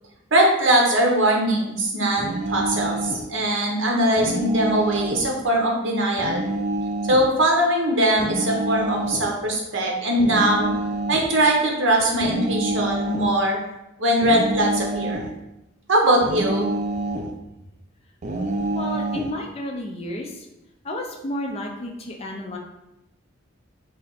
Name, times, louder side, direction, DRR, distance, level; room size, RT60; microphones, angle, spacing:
voice 1, 0.3-6.4 7.1-10.7 11.1-13.6 14.0-15.2 15.9-16.7, right 1 dB, 70° right, 0 dB, 0.9 m, -21 dB
sound 1, 2.2-3.3 4.2-5.3 6.2-7.3 8.2-9.3 10.2-11.3 12.2-13.3 14.2-15.3 16.2-17.3 18.2-19.3, right 2 dB, 35° right, 0.3 m, -27 dB
voice 2, 18.7-20.3 20.9-22.6, left 1 dB, 30° left, 1 dB, 0.4 m, -31 dB
3.3 x 2.7 x 4.0 m, 0.92 s
head